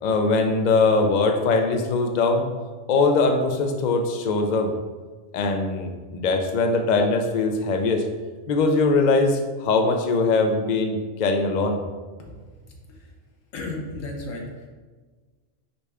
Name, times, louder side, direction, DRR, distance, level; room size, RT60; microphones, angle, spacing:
voice 1, 0.0-2.5 2.9-4.7 5.3-8.0 8.5-11.8, left 3 dB, 60° left, 4 dB, 0.4 m, -21 dB
voice 2, 12.6-13.2 13.5-14.7, left 2 dB, 85° left, 0 dB, 1.2 m, -35 dB
5.0 x 2.2 x 4.8 m, 1.4 s
omnidirectional pair, 1.3 m